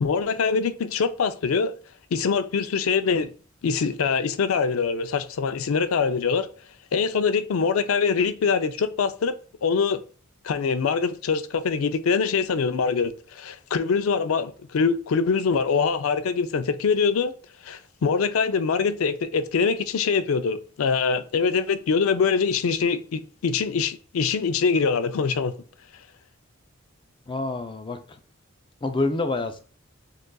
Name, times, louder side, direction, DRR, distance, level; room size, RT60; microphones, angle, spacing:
voice 1, 0.0-1.7 2.1-3.3 3.6-6.5 6.9-9.3 9.6-10.0 10.4-17.3 17.6-25.5, left 5 dB, 85° left, 0.4 m, -24 dB
voice 2, 27.3-28.0 28.8-29.6, left 2 dB, 25° left, 0.4 m, -27 dB
6.5 x 2.4 x 2.2 m
head